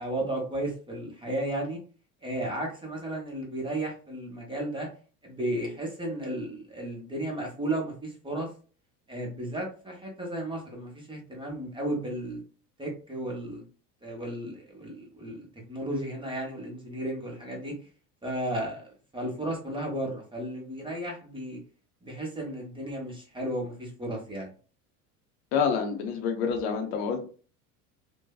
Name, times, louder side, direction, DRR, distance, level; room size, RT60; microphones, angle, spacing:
voice 1, 0.0-1.8 2.2-4.9 5.2-8.5 9.1-12.4 12.8-13.6 14.0-17.7 18.2-18.9 19.1-21.6 22.0-24.5, right 1 dB, 10° right, 0.9 m, -34 dB
voice 2, 25.5-27.2, left 6 dB, 60° left, 0.8 m, -27 dB
2.6 x 2.2 x 2.3 m
hypercardioid pair, 80°, 45 cm